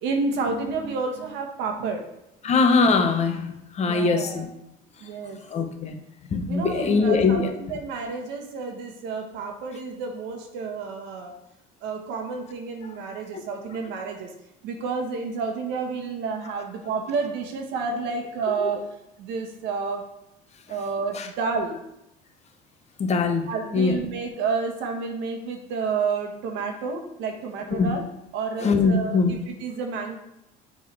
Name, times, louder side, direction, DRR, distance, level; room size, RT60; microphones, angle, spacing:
voice 1, 0.0-2.1 2.4-2.5 3.8-4.5 5.0-5.4 6.5-11.4 11.8-14.3 14.6-18.8 19.2-20.0 20.7-21.8 23.5-28.0 28.3-30.2, right 4 dB, 75° right, 4 dB, 1.4 m, -30 dB
voice 2, 2.4-3.5 3.8-4.5 5.5-6.0 6.3-7.5 13.3-13.4 23.0-23.5 23.7-23.9 27.8-27.9 28.6-29.3, left 4 dB, 35° left, 6 dB, 0.9 m, -21 dB
7.2 x 3.7 x 4.7 m, 0.84 s
cardioid pair, 115°, 19 cm